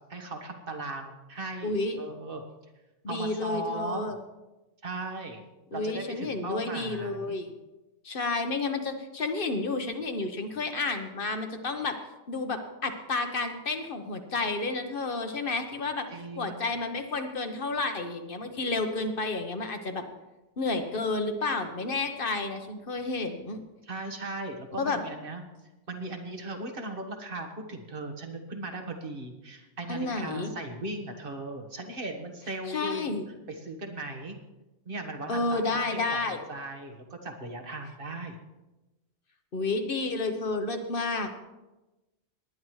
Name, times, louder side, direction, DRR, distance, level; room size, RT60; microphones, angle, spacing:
voice 1, 0.1-2.4 3.1-4.1 4.8-5.4 5.7-7.4 16.1-16.7 23.8-25.4 25.9-33.2 33.5-34.4 34.8-38.4, right 2 dB, 50° right, 4 dB, 1.6 m, -38 dB
voice 2, 1.6-2.0 3.0-4.2 5.7-7.5 8.0-11.9 12.3-16.1 16.4-20.0 20.6-23.6 24.8-25.0 29.9-30.5 32.7-33.2 35.3-36.4 39.5-41.4, left 3 dB, 50° left, 6 dB, 1.2 m, -31 dB
19.0 x 10.5 x 3.2 m, 1.1 s
omnidirectional pair, 1.2 m